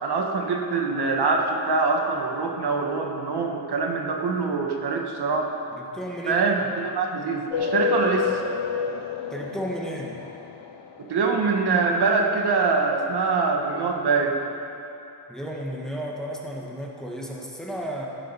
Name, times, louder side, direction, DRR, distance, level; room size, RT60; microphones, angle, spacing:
voice 1, 0.0-5.5 6.2-8.3 11.0-14.4, right 4 dB, 65° right, 2 dB, 1.3 m, -24 dB
voice 2, 5.7-6.7 9.3-10.2 15.3-18.1, equal, ahead, -2 dB, 1.6 m, -33 dB
sound 1, 7.5-11.1, left 6 dB, 75° left, 0.7 m, -29 dB
15.0 x 7.7 x 5.6 m, 2.8 s
wide cardioid pair, 115°, 43 cm